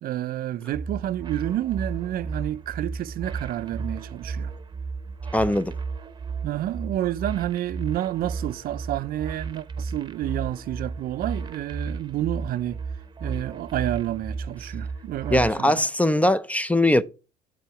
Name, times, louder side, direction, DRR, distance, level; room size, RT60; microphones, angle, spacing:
voice 1, 0.0-4.5 6.4-12.8 13.2-15.8, right 13 dB, 60° right, 0.4 m, -29 dB
sound 1, 0.7-15.5, right 4 dB, 25° right, 0.8 m, -34 dB
voice 2, 5.3-5.7 15.3-17.0, left 1 dB, 10° left, 0.4 m, -21 dB
9.2 x 4.2 x 4.7 m
cardioid pair, 110°, 17 cm